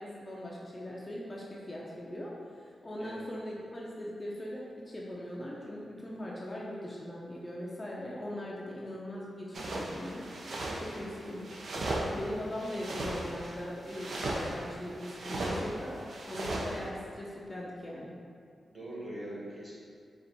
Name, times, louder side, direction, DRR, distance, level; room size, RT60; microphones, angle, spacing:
voice 1, 0.0-16.0 16.3-18.1, left 1 dB, 25° left, -4 dB, 0.5 m, -40 dB
sound 1, 9.5-16.8, right 1 dB, 70° right, 0.6 m, -37 dB
voice 2, 10.9-11.4 18.7-19.7, right 1 dB, 25° right, -6 dB, 1.3 m, -43 dB
4.4 x 2.5 x 4.0 m, 2.3 s
cardioid pair, 85°, 0 cm